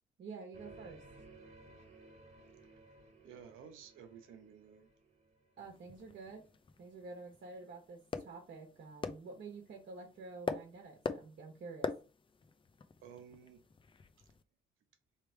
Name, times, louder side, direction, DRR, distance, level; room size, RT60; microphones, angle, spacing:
voice 1, 0.2-1.0 5.6-6.5 6.8-11.9, right 4 dB, 55° right, 1.3 m, -49 dB
sound 1, 0.5-6.1, right 2 dB, 35° right, 1.7 m, -58 dB
voice 2, 3.2-4.9 13.0-13.6 14.2-14.3, right 8 dB, 90° right, 1.0 m, -54 dB
sound 2, 5.6-14.4, left 4 dB, 25° left, 0.5 m, -45 dB
3.3 x 3.2 x 4.5 m
cardioid pair, 90°, 20 cm